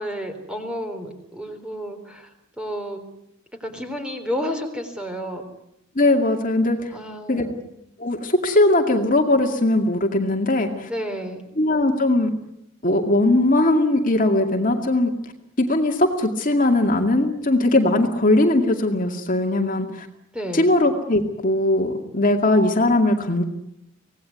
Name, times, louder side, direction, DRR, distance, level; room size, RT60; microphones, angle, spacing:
voice 1, 0.0-3.0 3.6-5.4 6.9-7.6 10.9-11.4 20.3-20.8, equal, 5° right, 5 dB, 3.7 m, -31 dB
voice 2, 6.0-6.9 7.3-7.5 8.0-10.9 11.6-12.3 12.8-15.1 15.6-20.1 20.5-23.4, left 1 dB, 40° left, 3 dB, 2.3 m, -19 dB
25.5 x 18.5 x 9.5 m, 0.84 s
head